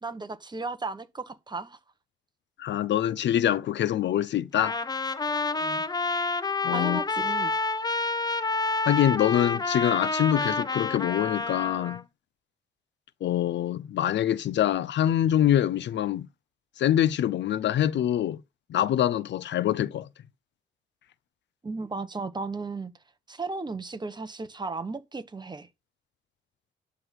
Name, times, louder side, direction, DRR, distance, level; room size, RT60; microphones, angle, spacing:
voice 1, 0.0-1.8 5.3-5.8 6.7-7.5 21.6-22.9 23.3-25.7, right 3 dB, 20° right, 1.3 m, -35 dB
voice 2, 2.6-4.8 6.6-7.0 8.9-12.0 13.2-16.3 16.8-18.4 18.7-20.1, left 11 dB, 65° left, 0.7 m, -25 dB
Trumpet, 4.5-12.0, left 3 dB, 20° left, 0.8 m, -28 dB
11.0 x 3.8 x 7.6 m
cardioid pair, 90°, 20 cm